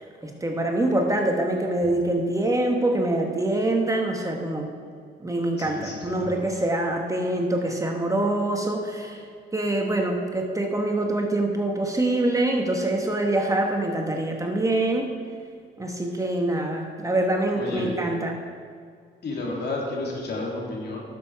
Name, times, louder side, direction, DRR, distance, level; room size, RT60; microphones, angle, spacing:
voice 1, 0.0-4.7 5.2-9.2 9.5-15.1 15.8-18.4, right 1 dB, 15° right, 2 dB, 1.3 m, -25 dB
voice 2, 5.6-6.5 17.5-17.9 19.2-21.0, left 2 dB, 55° left, -2 dB, 2.9 m, -31 dB
12.0 x 6.9 x 4.7 m, 2.2 s
cardioid pair, 90°, 20 cm